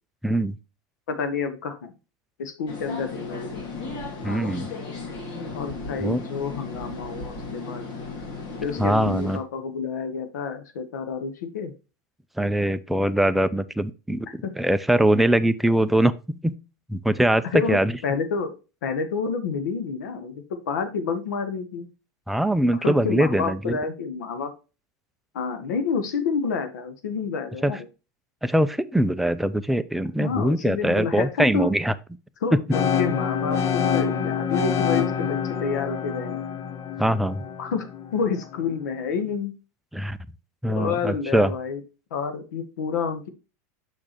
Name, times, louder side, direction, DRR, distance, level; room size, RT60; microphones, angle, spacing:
voice 1, 0.2-0.5 4.2-4.7 6.0-6.2 8.8-9.4 12.4-16.5 16.9-17.9 22.3-23.8 27.6-27.7 28.4-31.9 32.5-32.6 37.0-37.4 39.9-40.2 40.6-41.5, right 1 dB, ahead, 0.4 m, -22 dB
voice 2, 1.1-1.9 2.4-3.7 5.5-7.9 8.6-11.7 14.4-14.5 17.5-18.5 18.8-21.9 22.7-24.5 25.3-27.8 30.2-31.7 32.4-36.5 37.6-37.9 38.1-39.5 40.7-41.8 42.1-43.3, left 5 dB, 85° left, 1.3 m, -29 dB
sound 1, 2.7-9.4, left 3 dB, 50° left, 2.3 m, -35 dB
sound 2, 32.7-38.7, left 8 dB, 30° left, 0.7 m, -26 dB
6.5 x 6.0 x 3.0 m
supercardioid pair, 120°, 9 cm